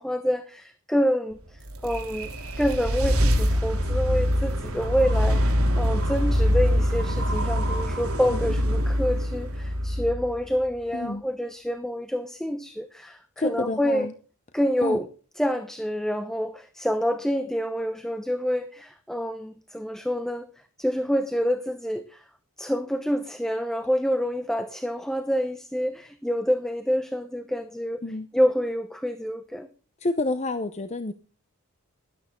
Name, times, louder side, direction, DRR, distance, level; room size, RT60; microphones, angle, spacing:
voice 1, 0.0-14.1 14.5-15.1 15.4-20.5 20.8-22.2 22.6-28.0 28.3-29.7, equal, ahead, 9 dB, 0.9 m, -27 dB
sound 1, 1.4-10.7, equal, 80° right, 2.9 m, -24 dB
voice 2, 13.4-14.1 14.8-15.0 28.0-28.3 30.0-31.1, left 2 dB, 30° left, 10 dB, 0.7 m, -28 dB
13.0 x 11.5 x 3.7 m, 0.38 s
head